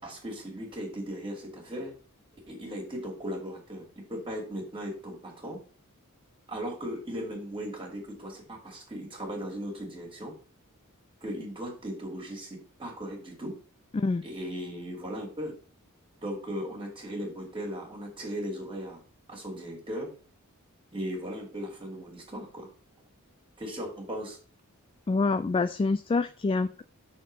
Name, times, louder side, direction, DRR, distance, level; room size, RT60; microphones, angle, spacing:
voice 1, 0.0-1.9 2.5-5.6 6.5-10.3 11.2-13.5 14.2-15.5 16.2-19.0 19.3-20.1 20.9-22.7 23.6-24.4, equal, 25° right, -1 dB, 2.5 m, -37 dB
voice 2, 25.1-26.8, left 3 dB, 25° left, 12 dB, 0.3 m, -26 dB
6.4 x 4.4 x 6.3 m, 0.38 s
head